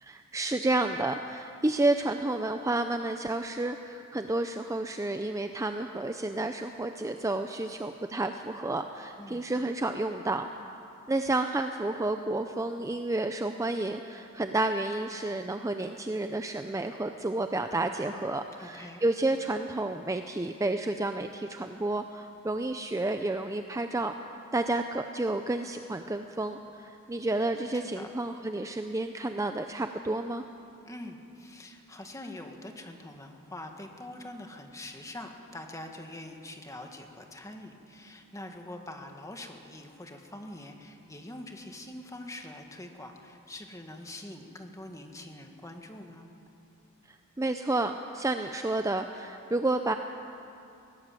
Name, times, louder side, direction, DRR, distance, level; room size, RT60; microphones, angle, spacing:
voice 1, 0.0-10.5 11.1-24.1 24.5-30.4 47.1-49.9, right 2 dB, 15° right, 7 dB, 0.5 m, -30 dB
voice 2, 18.6-19.0 27.7-28.1 30.8-46.3, left 1 dB, 15° left, 4 dB, 1.7 m, -44 dB
20.5 x 18.0 x 7.7 m, 2.7 s
head